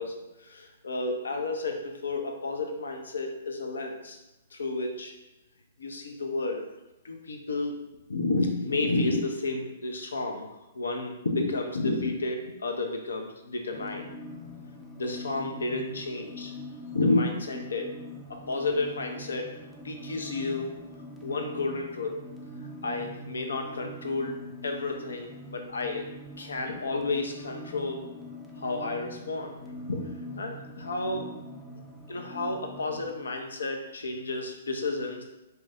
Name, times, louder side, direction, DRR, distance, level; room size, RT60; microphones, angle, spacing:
voice 1, 0.0-4.2 4.5-5.1 5.8-6.7 7.0-7.8 8.1-10.5 10.7-14.1 15.0-16.5 16.9-18.0 18.3-19.5 19.8-20.7 21.2-22.2 22.8-26.0 26.4-28.0 28.6-31.3 32.1-35.2, left 2 dB, 70° left, 3 dB, 0.5 m, -31 dB
sound 1, 13.7-33.1, left 1 dB, 5° left, 0.4 m, -43 dB
2.7 x 2.2 x 3.4 m, 0.98 s
figure-of-eight pair, 115°, 0 cm